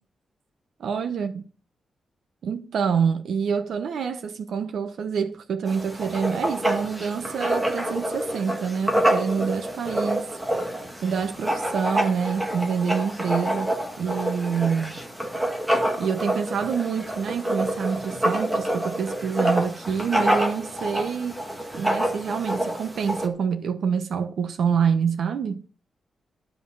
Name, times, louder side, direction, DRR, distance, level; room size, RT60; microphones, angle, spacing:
voice 1, 0.8-1.3 2.4-10.3 11.0-13.7 14.0-15.0 16.0-21.4 21.7-25.6, right 6 dB, 70° right, 0.9 m, -26 dB
Writing, 5.7-23.3, right 1 dB, 5° right, 1.7 m, -27 dB
12.5 x 5.3 x 7.3 m
wide cardioid pair, 180°, 0 cm